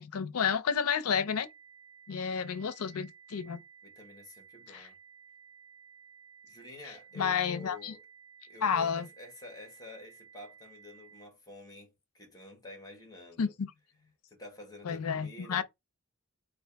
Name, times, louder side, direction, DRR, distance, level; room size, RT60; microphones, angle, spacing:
voice 1, 0.0-1.5 2.1-3.6 4.7-4.9 7.2-7.9 8.6-9.1 13.4-13.7 14.8-15.6, left 7 dB, 70° left, 0.5 m, -31 dB
sound 1, 1.2-11.2, right 6 dB, 60° right, 1.2 m, -56 dB
voice 2, 3.8-5.0 6.4-8.0 8.5-13.5 14.3-15.6, left 2 dB, 15° left, 1.4 m, -50 dB
3.7 x 2.5 x 3.4 m
head